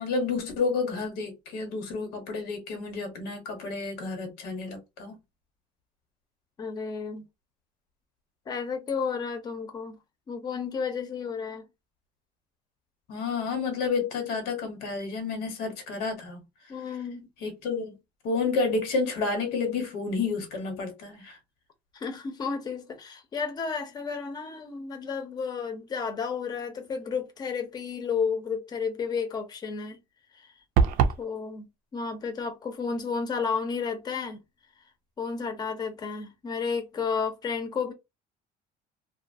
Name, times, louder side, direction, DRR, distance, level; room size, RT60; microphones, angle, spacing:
voice 1, 0.0-5.2 13.1-16.4 17.4-17.9 18.2-21.4, left 4 dB, 90° left, 1.2 m, -30 dB
voice 2, 6.6-7.3 8.5-10.0 10.3-11.6 16.7-17.3 21.9-30.0 30.3-30.5 31.2-31.7 31.9-34.4 35.2-37.9, left 5 dB, 25° left, 0.6 m, -32 dB
sound 1, 30.8-31.2, right 6 dB, 65° right, 0.4 m, -21 dB
2.6 x 2.3 x 2.6 m
cardioid pair, 170°, 16 cm